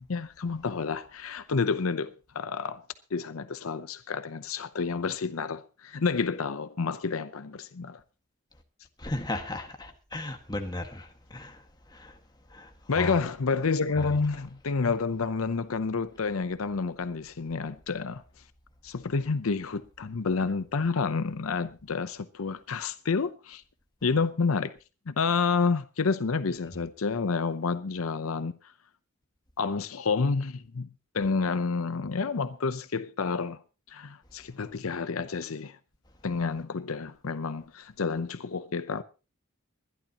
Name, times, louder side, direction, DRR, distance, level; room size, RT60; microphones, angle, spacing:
voice 1, 0.0-2.8 3.1-8.0 12.9-18.2 18.8-23.6 24.0-24.8 25.1-28.5 29.6-30.9 31.1-33.6 33.9-35.8 36.2-39.0, left 4 dB, 75° left, 0.7 m, -29 dB
voice 2, 9.0-11.6 11.9-12.1 12.5-13.2 14.0-14.2 26.5-26.9, left 1 dB, 20° left, 1.8 m, -36 dB
22.5 x 11.5 x 2.9 m
head